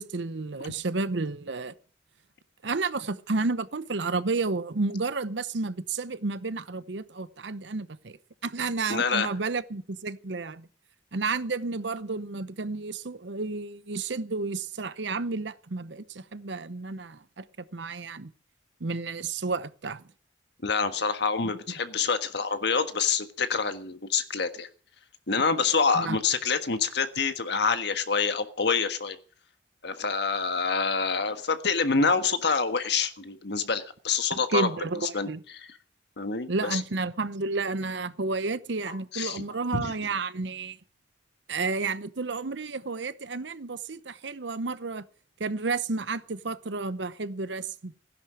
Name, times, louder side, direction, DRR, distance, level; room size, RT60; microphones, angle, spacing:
voice 1, 0.0-1.7 2.6-8.2 8.4-10.7 11.1-17.4 17.7-18.3 18.8-20.0 25.9-26.2 34.3-35.4 36.5-40.8 41.5-45.0 45.4-47.9, right 3 dB, 70° right, 0.8 m, -31 dB
voice 2, 8.9-9.3 20.6-24.7 25.3-29.2 29.8-34.7 34.9-35.3 35.5-35.7 36.2-36.8 38.9-39.4 39.7-39.9, left 5 dB, 65° left, 1.5 m, -27 dB
16.0 x 10.5 x 6.3 m
head